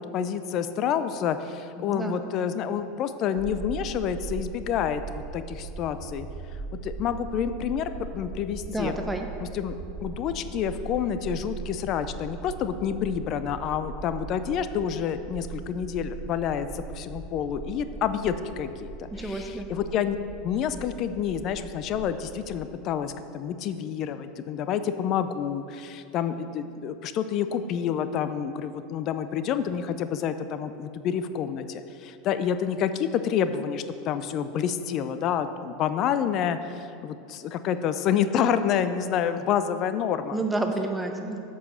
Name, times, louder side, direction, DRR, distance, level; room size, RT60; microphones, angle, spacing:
voice 1, 0.0-6.3 6.8-9.0 9.5-20.2 20.4-40.4, left 8 dB, 50° left, 11 dB, 0.5 m, -28 dB
voice 2, 1.8-2.2 8.7-9.3 19.1-19.7 40.3-41.4, right 2 dB, 10° right, 4 dB, 1.0 m, -30 dB
sound 1, 3.4-22.6, right 5 dB, 40° right, 1.0 m, -40 dB
7.7 x 5.5 x 6.3 m, 2.6 s
hypercardioid pair, 95°, 0 cm